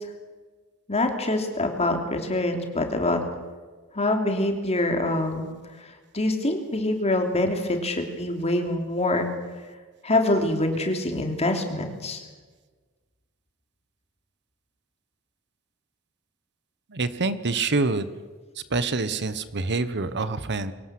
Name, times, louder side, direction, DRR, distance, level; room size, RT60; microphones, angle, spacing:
voice 1, 0.9-3.2 3.9-5.5 6.1-9.3 10.0-12.2, left 2 dB, 30° left, 4 dB, 3.2 m, -25 dB
voice 2, 16.9-18.1 18.7-20.7, right 3 dB, 55° right, 14 dB, 1.1 m, -26 dB
23.5 x 18.0 x 7.7 m, 1.4 s
head